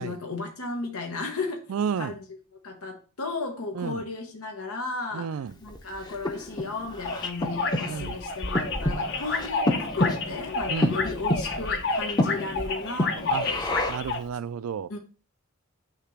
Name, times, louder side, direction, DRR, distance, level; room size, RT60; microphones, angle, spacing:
voice 1, 0.0-1.6 2.0-2.2 2.6-13.8 14.9-15.0, left 3 dB, 90° left, 1.0 m, -34 dB
voice 2, 1.7-2.1 3.8-4.0 5.1-5.5 7.9-8.2 10.7-11.0 13.3-13.5 13.9-14.9, right 7 dB, 80° right, 0.4 m, -31 dB
Breathing, 5.7-14.2, left 1 dB, 20° left, 0.6 m, -30 dB
sound 1, 7.0-14.2, left 3 dB, 55° left, 0.9 m, -30 dB
6.7 x 2.9 x 5.8 m
head